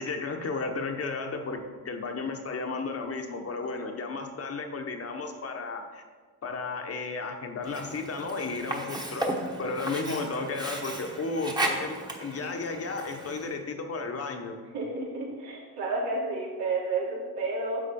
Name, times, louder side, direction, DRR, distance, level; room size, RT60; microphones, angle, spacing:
voice 1, 0.0-6.0 6.4-9.3 9.6-14.6, left 3 dB, 40° left, 4 dB, 1.0 m, -33 dB
Sink (filling or washing), 7.6-13.6, right 1 dB, 10° right, 1.1 m, -35 dB
voice 2, 14.7-17.8, right 3 dB, 90° right, -5 dB, 3.3 m, -31 dB
10.0 x 7.4 x 4.2 m, 1.5 s
cardioid pair, 135°, 37 cm